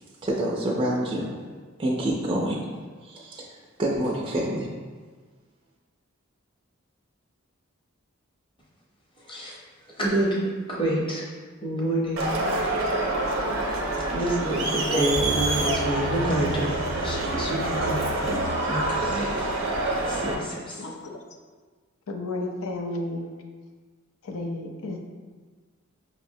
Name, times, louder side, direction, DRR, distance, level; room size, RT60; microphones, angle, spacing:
voice 1, 0.2-1.3 1.8-2.6 3.0-3.5 3.8-4.7, right 1 dB, 25° right, -3 dB, 0.3 m, -27 dB
voice 2, 9.3-9.6 10.0-11.2 11.6-12.2 14.1-19.3 20.1-20.8, right 1 dB, 25° left, -5 dB, 0.7 m, -28 dB
Crowd, 12.2-20.3, right 2 dB, 75° right, 0.6 m, -26 dB
voice 3, 20.7-21.2 22.1-23.3 24.2-25.0, left 2 dB, 90° left, 2 dB, 0.5 m, -32 dB
5.5 x 2.0 x 2.6 m, 1.4 s
head